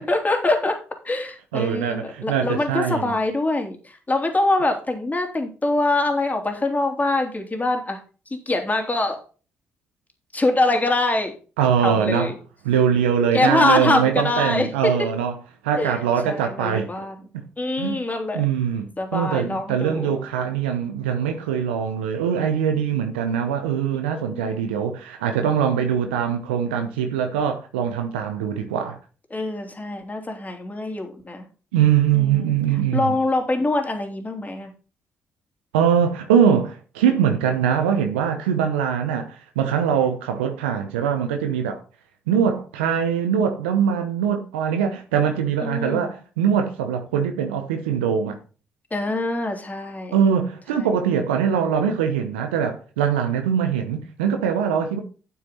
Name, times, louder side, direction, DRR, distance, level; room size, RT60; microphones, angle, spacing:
voice 1, 0.1-0.8 1.0-8.0 8.3-9.2 10.3-11.3 11.8-12.4 13.3-15.1 15.8-16.0 16.2-17.1 17.6-18.4 19.0-20.2 24.1-24.6 29.3-31.4 32.1-32.6 32.9-34.7 45.6-46.1 48.9-50.1, left 2 dB, 25° left, 3.0 m, -24 dB
voice 2, 1.5-3.1 11.6-12.3 12.6-15.3 15.6-16.9 17.8-18.0 18.3-29.0 31.7-33.2 35.7-41.8 42.3-48.4 50.1-55.0, right 8 dB, 85° right, 0.8 m, -22 dB
8.6 x 8.6 x 4.1 m
hypercardioid pair, 40°, 6 cm